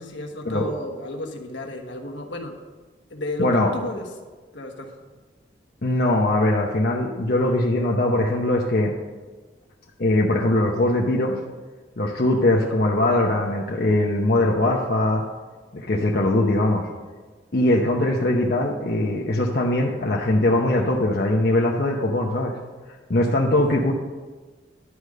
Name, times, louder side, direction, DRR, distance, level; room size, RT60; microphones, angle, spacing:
voice 1, 0.0-2.5 3.1-3.5 3.7-4.1 4.5-4.9, left 1 dB, 75° left, 2 dB, 1.3 m, -32 dB
voice 2, 3.4-3.7 5.8-8.9 10.0-11.4 12.0-15.2 15.7-16.9 17.5-22.6 23.1-23.9, left 1 dB, 55° left, -2 dB, 0.8 m, -21 dB
11.5 x 4.9 x 6.5 m, 1.3 s
head